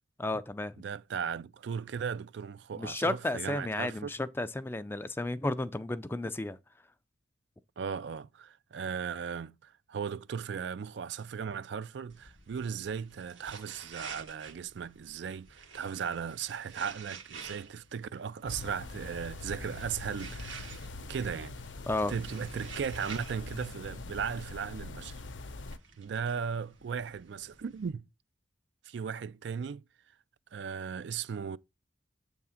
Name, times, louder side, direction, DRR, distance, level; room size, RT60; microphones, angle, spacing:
voice 1, 0.2-0.8 2.8-6.6 21.9-22.1, left 2 dB, 10° left, 0.4 m, -33 dB
voice 2, 0.8-4.1 7.8-20.7 21.1-21.6 22.1-25.2 26.0-28.0 28.9-29.8 30.5-31.6, right 7 dB, 65° right, 0.4 m, -37 dB
sound 1, 12.1-27.9, right 6 dB, 90° right, 1.6 m, -50 dB
sound 2, 18.5-25.8, left 3 dB, 80° left, 0.7 m, -43 dB
7.8 x 3.6 x 5.7 m
head